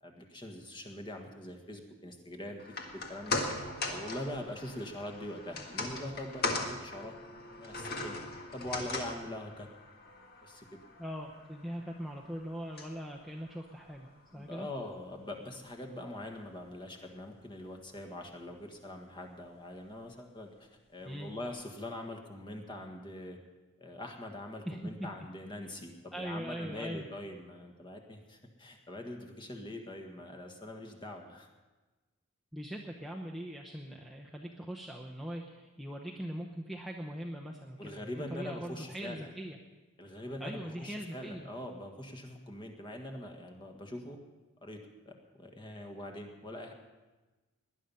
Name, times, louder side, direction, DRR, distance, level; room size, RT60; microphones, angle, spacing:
voice 1, 0.0-2.6 2.9-3.4 3.9-7.1 7.6-8.2 8.5-9.7 10.4-10.8 14.3-23.4 23.8-31.5 37.8-39.3 40.0-44.2 44.6-44.8 45.0-46.7, left 1 dB, 20° left, 3 dB, 1.6 m, -43 dB
sound 1, 2.6-15.0 15.3-15.4, left 3 dB, 45° left, 1.8 m, -40 dB
voice 2, 11.0-14.7 21.0-21.3 24.7-25.1 26.1-27.1 32.5-39.6 40.4-41.5, equal, ahead, -2 dB, 0.8 m, -41 dB
19.0 x 11.0 x 5.6 m, 1.2 s
head